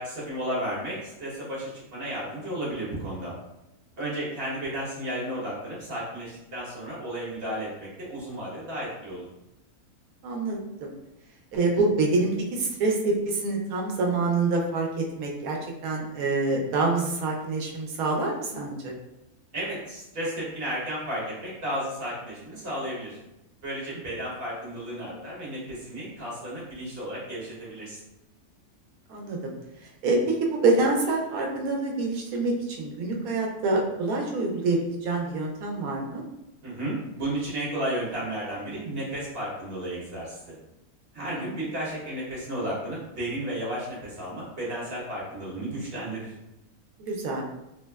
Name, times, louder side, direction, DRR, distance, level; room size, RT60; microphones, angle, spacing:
voice 1, 0.0-3.3 4.0-9.2 19.5-23.2 23.6-28.0 36.6-40.6 41.1-46.3, right 1 dB, 45° right, -6 dB, 1.2 m, -33 dB
voice 2, 10.2-10.9 11.5-15.6 15.8-18.9 29.1-29.5 30.0-36.2 41.2-41.5 47.0-47.4, right 3 dB, 80° right, 0 dB, 1.0 m, -26 dB
3.2 x 2.1 x 2.2 m, 0.92 s
omnidirectional pair, 1.5 m